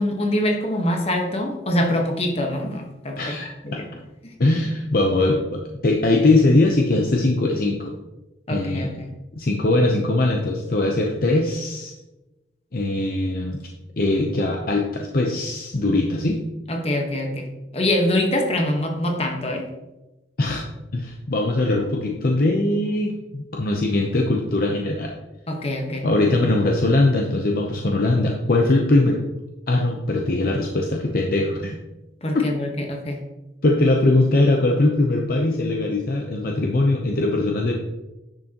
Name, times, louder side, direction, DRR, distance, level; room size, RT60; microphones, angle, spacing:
voice 1, 0.0-3.4 3.6-3.9 4.2-4.3 8.5-9.1 16.7-17.5 17.7-19.7 25.5-26.1 32.2-33.2, left 1 dB, 35° left, 2 dB, 1.2 m, -24 dB
voice 2, 3.2-3.8 4.4-7.9 8.5-9.0 9.3-11.9 12.7-13.6 14.0-16.4 20.4-20.6 20.9-25.1 26.0-29.2 29.7-31.8 32.3-32.5 33.6-37.7, left 2 dB, 50° left, 1 dB, 0.7 m, -21 dB
10.0 x 6.4 x 2.9 m, 1.0 s
head